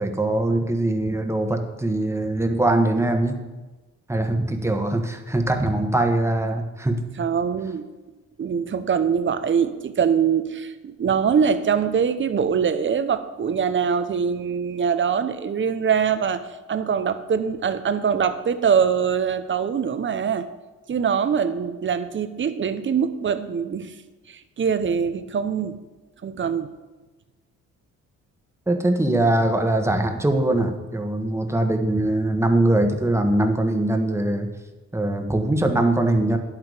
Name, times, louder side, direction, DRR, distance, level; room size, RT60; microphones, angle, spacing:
voice 1, 0.0-3.4 4.1-7.0 28.7-34.5 34.9-36.4, right 1 dB, 10° right, 5 dB, 1.4 m, -22 dB
voice 2, 7.2-7.9 8.4-20.5 20.9-23.9 24.3-25.8 26.2-26.7, right 7 dB, 40° right, 11 dB, 0.9 m, -23 dB
11.0 x 8.2 x 5.0 m, 1.2 s
cardioid pair, 90°, 30 cm